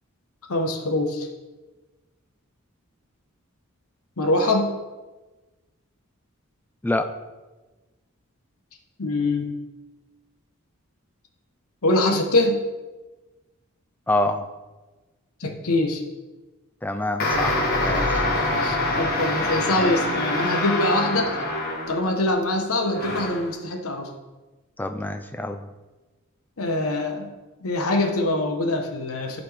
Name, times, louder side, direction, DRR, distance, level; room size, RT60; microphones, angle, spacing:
voice 1, 0.5-1.3 4.2-4.7 9.0-9.5 11.8-12.6 15.4-16.0 18.6-21.4 21.9-24.1 26.6-27.3 27.6-29.4, left 2 dB, 80° left, 4 dB, 1.0 m, -24 dB
voice 2, 14.1-14.4 16.8-18.2 24.8-25.7, left 2 dB, 10° left, 8 dB, 0.3 m, -26 dB
sound 1, 17.2-22.2 22.9-23.5, left 2 dB, 45° left, 1.4 m, -25 dB
11.0 x 4.2 x 3.3 m, 1.2 s
head